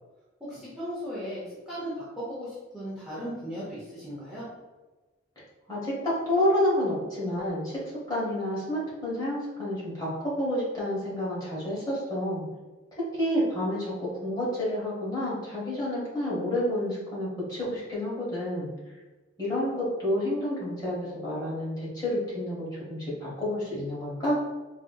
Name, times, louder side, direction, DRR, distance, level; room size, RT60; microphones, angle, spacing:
voice 1, 0.4-4.5, equal, 5° right, -10 dB, 0.7 m, -37 dB
voice 2, 5.7-7.8 8.1-12.4 13.1-18.7 19.4-24.4, left 1 dB, 20° left, -8 dB, 1.2 m, -29 dB
4.0 x 2.7 x 2.3 m, 1.2 s
head